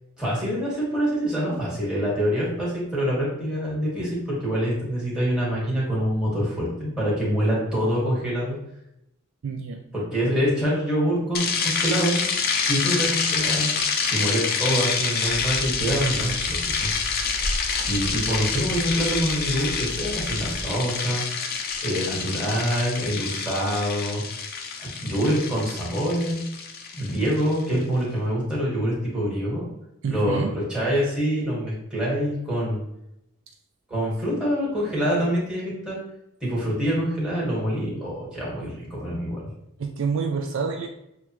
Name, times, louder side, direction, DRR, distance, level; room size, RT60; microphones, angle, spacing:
voice 1, 0.2-8.6 9.9-12.2 12.7-13.7 14.1-16.9 17.9-21.5 21.8-24.2 25.0-26.4 26.9-29.7 30.1-32.8 33.9-36.0 36.4-39.4, equal, 5° right, -6 dB, 1.6 m, -25 dB
voice 2, 9.4-9.8 30.0-30.6 39.8-40.9, right 5 dB, 55° right, 4 dB, 0.3 m, -27 dB
sound 1, 11.3-27.6, left 5 dB, 45° left, 0.4 m, -27 dB
sound 2, 14.7-15.1 15.5-15.8 16.4-18.5 19.8-20.3 20.8-20.9 21.6-21.8 22.2-22.3, equal, 20° right, 1.1 m, -37 dB
sound 3, 15.2-20.6, right 1 dB, 80° right, 1.0 m, -38 dB
6.5 x 2.3 x 2.9 m, 0.83 s
head